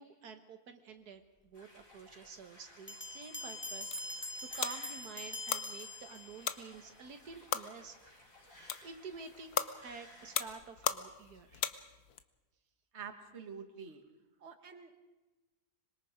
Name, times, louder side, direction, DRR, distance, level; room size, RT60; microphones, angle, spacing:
voice 1, 0.0-4.3 4.5-8.2 8.8-11.6, right 5 dB, 80° right, 7 dB, 1.8 m, -49 dB
sound 1, 1.5-10.5, left 1 dB, 60° left, 6.3 m, -59 dB
Bell, 2.9-6.7, left 1 dB, 10° left, 0.9 m, -43 dB
sound 2, 3.6-12.2, left 9 dB, 80° left, 1.4 m, -40 dB
voice 2, 12.9-14.0 14.4-15.0, right 6 dB, 45° right, 6 dB, 1.9 m, -47 dB
25.5 x 22.5 x 5.0 m, 1.1 s
omnidirectional pair, 1.6 m